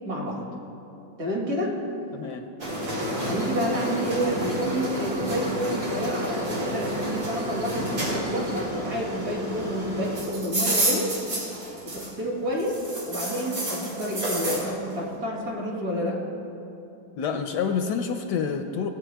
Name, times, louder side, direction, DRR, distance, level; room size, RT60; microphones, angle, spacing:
voice 1, 0.1-0.5 1.2-1.8 3.3-11.1 11.8-12.8 13.1-16.2, equal, 50° right, -2 dB, 2.4 m, -29 dB
voice 2, 2.1-2.5 17.2-18.9, left 6 dB, 75° left, 6 dB, 1.1 m, -28 dB
sound 1, 2.6-12.3 12.6-14.7, right 1 dB, 75° right, 3.4 m, -30 dB
17.5 x 8.8 x 3.4 m, 2.7 s
omnidirectional pair, 2.1 m